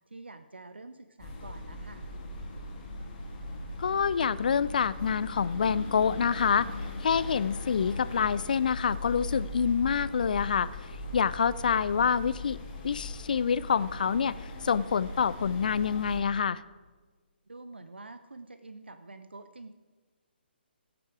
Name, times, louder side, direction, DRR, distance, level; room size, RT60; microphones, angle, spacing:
voice 1, 0.1-2.0 17.5-19.7, right 2 dB, 75° right, 10 dB, 0.6 m, -47 dB
sound 1, 1.2-16.2, left 2 dB, 25° left, 2.0 m, -39 dB
voice 2, 3.8-6.7 7.0-10.7 11.1-12.6 12.8-14.4 14.6-16.6, left 7 dB, 50° left, 18 dB, 0.4 m, -27 dB
14.5 x 8.7 x 4.9 m, 1.4 s
figure-of-eight pair, 135°, 6 cm